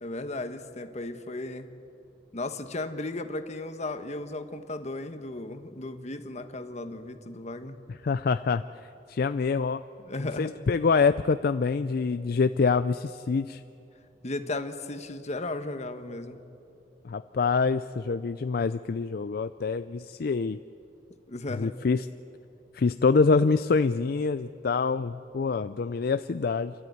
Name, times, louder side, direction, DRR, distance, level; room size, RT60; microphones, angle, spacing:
voice 1, 0.0-1.7 2.3-7.8 10.0-10.5 14.2-16.4 21.3-21.7, left 2 dB, 40° left, 8 dB, 1.2 m, -35 dB
voice 2, 7.9-8.6 9.1-9.8 10.2-13.6 17.0-20.6 21.5-22.1 22.7-26.7, left 4 dB, 60° left, 12 dB, 0.4 m, -25 dB
29.5 x 13.0 x 9.4 m, 2.8 s
head